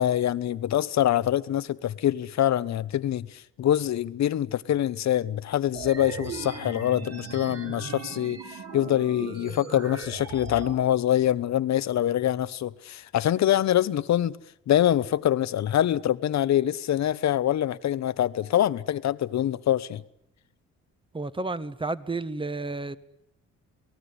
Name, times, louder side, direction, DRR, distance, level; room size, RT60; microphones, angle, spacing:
voice 1, 0.0-14.4 14.7-20.0, left 11 dB, 65° left, 1.2 m, -25 dB
sound 1, 5.7-10.7, right 4 dB, 55° right, 6.7 m, -38 dB
voice 2, 21.1-23.0, right 3 dB, 15° right, 1.5 m, -31 dB
29.0 x 19.0 x 9.9 m
cardioid pair, 90°, 30 cm